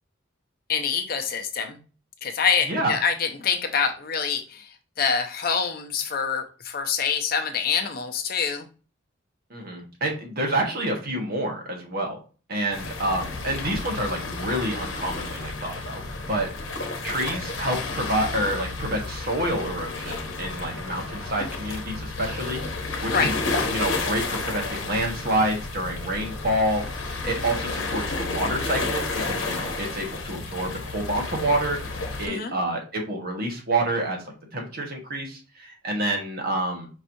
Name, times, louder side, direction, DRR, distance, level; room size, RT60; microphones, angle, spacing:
voice 1, 0.7-1.8 2.2-8.7 23.1-23.3 32.3-32.5, left 6 dB, 50° left, 5 dB, 0.6 m, -26 dB
voice 2, 9.5-12.2 12.5-16.0 16.3-16.5 17.0-23.3 23.7-31.8 32.2-34.2 34.5-36.9, right 1 dB, 50° right, 1 dB, 1.2 m, -28 dB
sound 1, 12.7-32.3, left 3 dB, 85° left, 0.9 m, -31 dB
5.3 x 3.0 x 2.6 m, 0.35 s
head